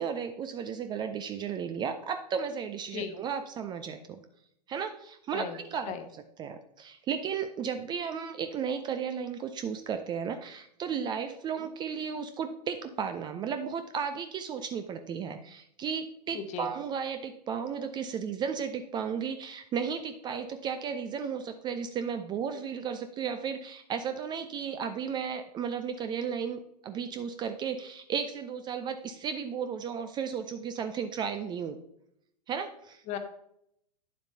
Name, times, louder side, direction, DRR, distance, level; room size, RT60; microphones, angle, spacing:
voice 1, 0.0-4.2 4.7-5.9 6.4-31.8 32.5-33.0, right 7 dB, 20° right, 8 dB, 0.5 m, -34 dB
voice 2, 16.3-16.7 33.1-33.2, left 8 dB, 35° left, 8 dB, 1.1 m, -36 dB
9.5 x 7.4 x 2.7 m, 0.73 s
figure-of-eight pair, 100°, 21 cm